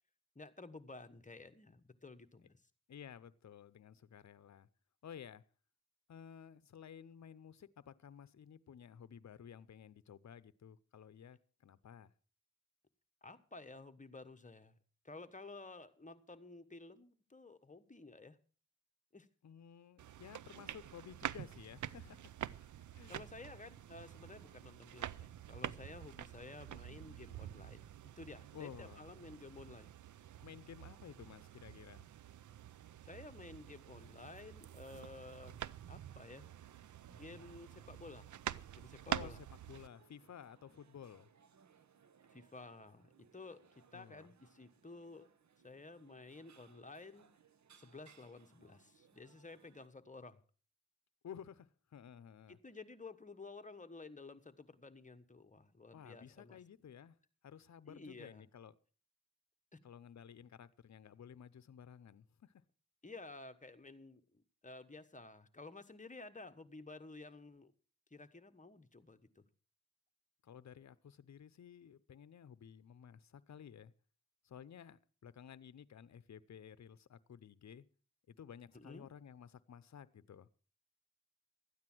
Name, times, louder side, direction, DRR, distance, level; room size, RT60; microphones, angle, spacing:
voice 1, 0.3-2.6 13.2-14.8 15.0-18.4 19.1-19.3 23.1-27.9 28.2-29.9 33.0-36.5 37.1-38.3 38.7-39.4 42.3-43.6 43.9-45.3 45.6-47.3 47.8-50.4 52.5-56.6 57.9-58.5 59.7-59.8 63.0-67.7 68.1-69.4 78.7-79.1, left 3 dB, 25° left, 1.2 m, -53 dB
voice 2, 2.9-4.7 5.0-5.4 6.1-12.1 19.4-22.3 22.9-23.3 28.5-29.1 30.4-32.1 39.1-41.3 43.9-44.3 51.2-52.6 55.9-57.2 57.4-58.7 59.8-62.6 70.4-73.9 74.4-77.8 78.3-80.5, left 8 dB, 70° left, 0.7 m, -54 dB
sound 1, 20.0-39.9, right 11 dB, 85° right, 0.5 m, -47 dB
sound 2, 34.0-49.9, right 7 dB, 70° right, 1.0 m, -67 dB
13.5 x 9.6 x 6.0 m
cardioid pair, 65°, 29 cm